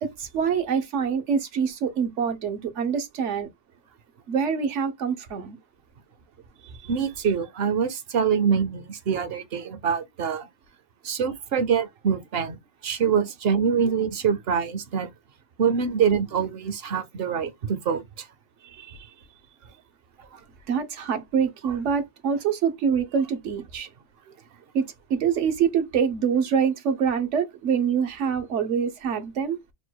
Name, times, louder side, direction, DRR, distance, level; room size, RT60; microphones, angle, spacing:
voice 1, 0.0-3.5 4.3-5.6 6.6-6.9 18.6-19.1 20.7-23.9 24.7-29.6, right 7 dB, 85° right, 1.1 m, -25 dB
voice 2, 6.9-10.5 11.0-12.6 12.8-15.1 15.6-18.3 21.6-21.7, right 7 dB, 60° right, 0.8 m, -25 dB
3.8 x 2.2 x 4.5 m
omnidirectional pair, 1.2 m